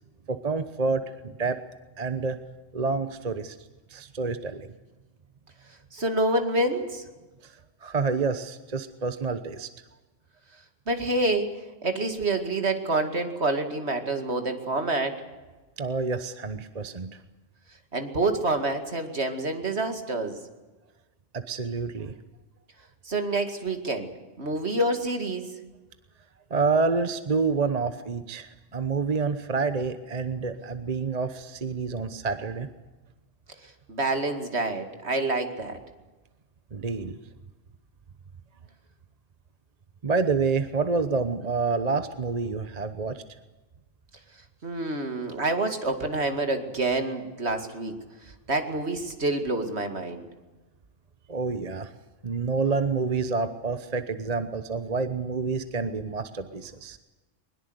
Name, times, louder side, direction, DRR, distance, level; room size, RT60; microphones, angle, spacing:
voice 1, 0.3-1.6 2.0-2.4 2.7-3.6 3.9-4.7 7.4-7.5 7.8-9.7 15.8-17.1 21.3-22.1 26.5-32.7 36.7-37.2 40.0-43.2 51.3-51.9 52.2-57.0, right 4 dB, 35° right, 10 dB, 1.0 m, -28 dB
voice 2, 5.9-7.0 10.9-11.5 11.8-15.1 17.9-20.4 23.1-24.1 24.4-25.5 33.9-35.8 44.6-47.9 48.5-50.3, right 2 dB, 60° right, 6 dB, 2.6 m, -27 dB
21.5 x 21.0 x 8.1 m, 1.2 s
omnidirectional pair, 1.3 m